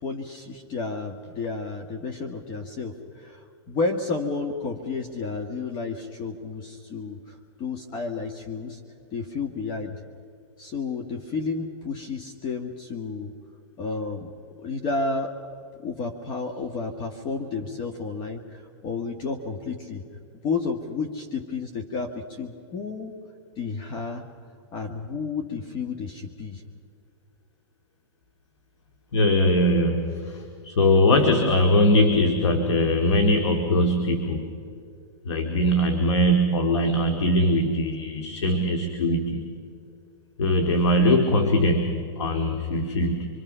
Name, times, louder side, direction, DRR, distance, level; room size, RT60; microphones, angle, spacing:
voice 1, 0.0-8.8 9.1-10.0 10.6-13.4 13.8-14.3 14.6-20.0 20.4-23.1 23.6-24.3 24.7-26.6, left 4 dB, 35° left, 5 dB, 1.6 m, -31 dB
voice 2, 29.1-34.5 35.3-39.5 40.4-43.3, left 1 dB, 80° left, 5 dB, 2.4 m, -21 dB
27.0 x 24.0 x 5.6 m, 2.5 s
hypercardioid pair, 140°, 14 cm